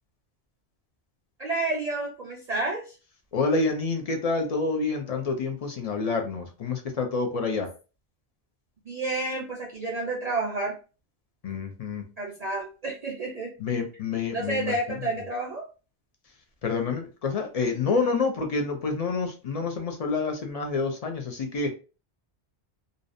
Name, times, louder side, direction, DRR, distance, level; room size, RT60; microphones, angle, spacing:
voice 1, 1.4-3.0 8.9-10.8 12.2-13.5 14.3-15.7, right 2 dB, 50° right, -2 dB, 0.5 m, -30 dB
voice 2, 3.3-7.7 11.4-12.1 13.6-14.7 16.6-21.7, left 4 dB, 55° left, 4 dB, 0.4 m, -28 dB
2.6 x 2.0 x 2.4 m, 0.33 s
omnidirectional pair, 1.1 m